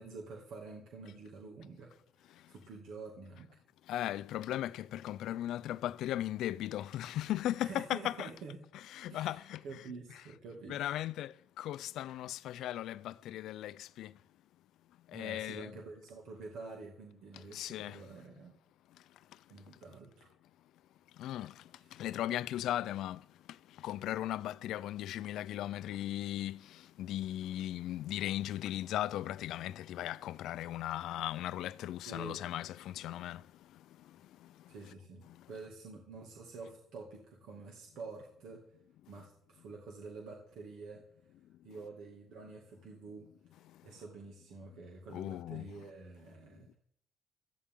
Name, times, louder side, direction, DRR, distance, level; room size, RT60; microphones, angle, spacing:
voice 1, 0.0-1.9 2.2-3.6 7.6-8.6 9.1-10.8 15.1-18.5 19.5-20.3 21.7-22.0 32.1-32.4 34.7-38.6 39.1-41.0 41.6-46.7, right 4 dB, 75° right, 2.3 m, -48 dB
voice 2, 3.9-8.3 8.9-9.6 10.7-14.1 15.1-15.7 17.3-18.0 21.2-21.6 21.9-33.5 33.7-34.7 35.3-35.5 45.1-45.7, left 13 dB, 75° left, 0.5 m, -37 dB
17.0 x 14.0 x 3.8 m
cardioid pair, 140°, 0 cm